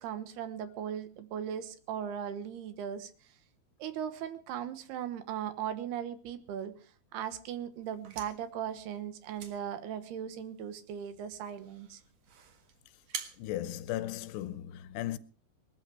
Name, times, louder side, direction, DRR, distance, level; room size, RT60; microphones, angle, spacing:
voice 1, 0.0-3.1 3.8-6.7 7.1-12.0, right 9 dB, 75° right, 3.2 m, -38 dB
sound 1, 7.8-14.6, right 7 dB, 55° right, 2.2 m, -49 dB
voice 2, 13.4-15.2, left 13 dB, 85° left, 3.0 m, -36 dB
19.5 x 13.0 x 4.6 m
omnidirectional pair, 4.8 m